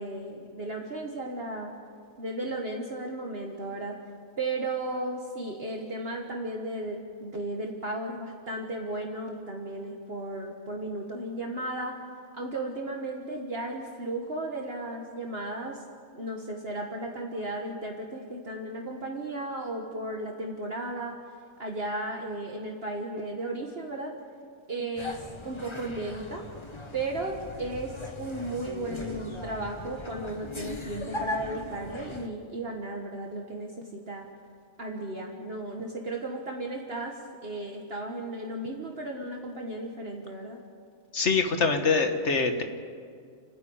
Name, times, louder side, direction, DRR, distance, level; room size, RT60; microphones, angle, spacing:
voice 1, 0.0-1.7 2.2-4.0 4.4-12.0 12.3-15.8 16.1-21.2 21.6-24.1 24.7-26.5 26.9-34.3 34.8-40.6, right 2 dB, 50° right, 1 dB, 1.7 m, -35 dB
sound 1, 24.9-32.3, left 2 dB, 20° left, 1.4 m, -39 dB
voice 2, 41.1-42.6, left 4 dB, 60° left, 5 dB, 1.7 m, -24 dB
29.5 x 10.0 x 8.7 m, 2.1 s
omnidirectional pair, 1.4 m